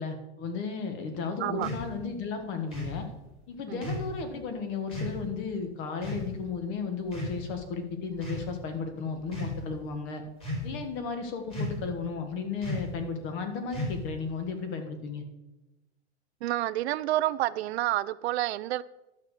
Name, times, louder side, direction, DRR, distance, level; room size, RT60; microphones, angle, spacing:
voice 1, 0.0-3.1 3.5-10.2 10.6-15.2, left 5 dB, 35° left, 7 dB, 1.5 m, -34 dB
sound 1, 1.6-1.9 2.7-3.0 3.8-4.1 4.9-5.2 6.0-6.3 7.1-7.6 8.2-8.5 9.2-9.6 10.4-10.8 11.5-11.9 12.6-13.0 13.7-14.2, left 1 dB, 15° left, 3.2 m, -34 dB
voice 2, 16.4-18.8, right 15 dB, 70° right, 15 dB, 0.5 m, -29 dB
11.5 x 6.5 x 4.9 m, 1.0 s
supercardioid pair, 150°, 33 cm